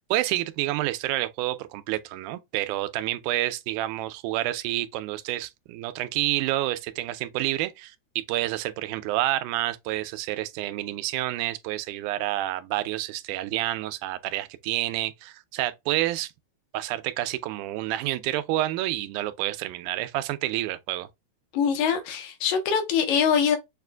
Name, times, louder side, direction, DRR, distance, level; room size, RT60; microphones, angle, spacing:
voice 1, 0.1-16.3 16.7-21.1, right 15 dB, 85° right, 2.0 m, -29 dB
voice 2, 21.5-23.6, left 7 dB, 70° left, 2.2 m, -23 dB
6.5 x 2.5 x 2.2 m
omnidirectional pair, 3.6 m